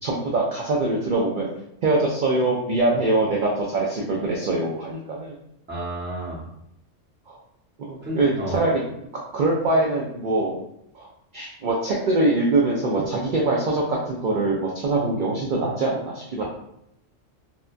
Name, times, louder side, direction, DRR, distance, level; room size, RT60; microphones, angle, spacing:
voice 1, 0.0-1.5 1.8-5.3 7.3-7.4 7.9-8.8 9.3-10.5 10.9-11.1 11.3-16.4, right 2 dB, 60° right, -3 dB, 0.5 m, -23 dB
voice 2, 5.7-6.4 8.0-8.6 16.4-16.5, right 1 dB, 10° right, -7 dB, 0.6 m, -31 dB
2.8 x 2.2 x 2.4 m, 0.77 s
omnidirectional pair, 1.3 m